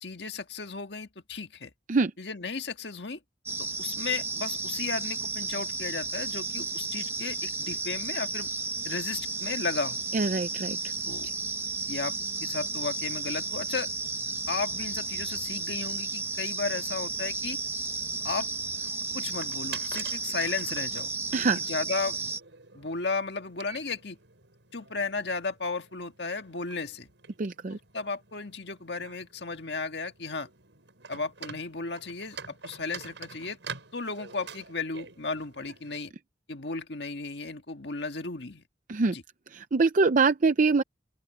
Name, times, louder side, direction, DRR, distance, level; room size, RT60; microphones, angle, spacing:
voice 1, 0.0-1.7 2.2-3.2 3.6-8.5 8.8-10.1 11.0-11.3 11.9-12.1 12.4-13.9 14.5-17.6 18.2-18.5 19.1-21.1 21.6-22.2 22.7-24.2 24.7-27.1 27.7-30.5 31.1-33.6 33.9-36.1 36.5-38.6 39.1-39.2, left 4 dB, 65° left, 1.8 m, -34 dB
sound 1, 3.5-22.4, right 3 dB, 15° right, 1.0 m, -33 dB
voice 2, 10.1-10.8 21.3-21.6 27.4-27.8 38.9-39.2 39.5-40.8, right 4 dB, 45° right, 0.5 m, -24 dB
sound 2, 18.0-36.0, right 6 dB, 90° right, 6.0 m, -47 dB
open air
head